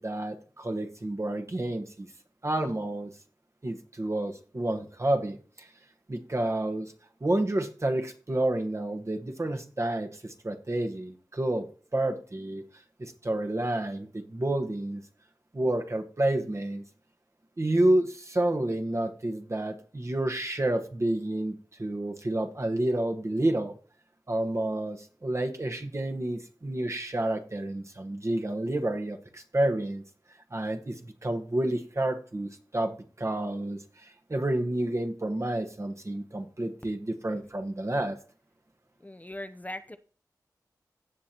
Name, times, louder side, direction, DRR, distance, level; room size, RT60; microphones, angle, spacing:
voice 1, 0.0-2.1 2.4-3.1 3.6-5.7 6.1-6.9 7.2-12.6 13.0-15.0 15.5-16.8 17.6-23.7 24.3-30.0 30.5-38.2, right 1 dB, 45° right, 5 dB, 1.3 m, -29 dB
voice 2, 39.0-40.0, left 1 dB, 20° left, 10 dB, 0.7 m, -39 dB
16.5 x 6.5 x 2.9 m, 0.40 s
cardioid pair, 40°, 7 cm